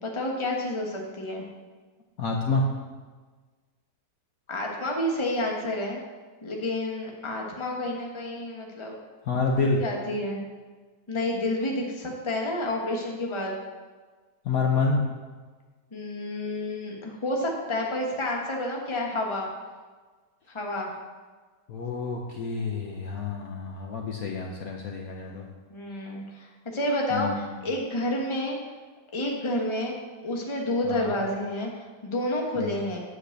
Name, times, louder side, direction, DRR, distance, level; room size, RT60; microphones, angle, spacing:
voice 1, 0.0-1.4 4.5-6.0 6.4-9.0 9.8-10.4 11.1-13.5 15.9-19.5 20.5-20.9 25.7-28.6 29.1-29.9 30.2-33.0, left 1 dB, 20° left, 0 dB, 1.1 m, -29 dB
voice 2, 2.2-2.7 9.3-9.8 14.4-15.0 21.7-25.5 27.1-27.6 30.8-31.2 32.6-32.8, left 3 dB, 60° left, 0 dB, 1.2 m, -28 dB
8.5 x 5.1 x 6.5 m, 1.4 s
omnidirectional pair, 1.9 m